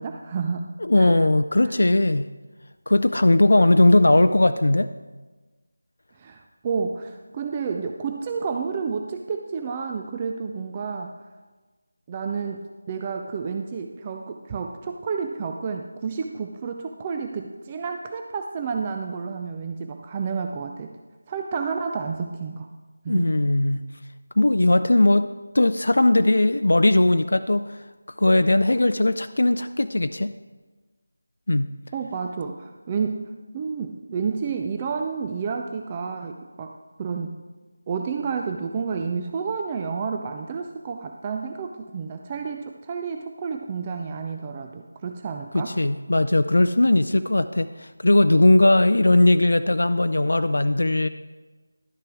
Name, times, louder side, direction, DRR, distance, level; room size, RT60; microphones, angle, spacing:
voice 1, 0.0-0.7 0.9-1.2 1.6-1.7 6.2-11.1 12.1-21.0 21.3-22.7 23.0-23.4 31.9-37.4 37.9-45.8, right 5 dB, 20° right, 4 dB, 0.4 m, -30 dB
voice 2, 0.8-2.3 2.9-4.9 23.1-23.8 24.4-25.3 25.5-27.8 28.2-30.3 31.5-31.7 45.5-51.1, left 2 dB, 65° left, 10 dB, 0.3 m, -19 dB
11.5 x 6.7 x 4.6 m, 1.3 s
figure-of-eight pair, 165°, 0 cm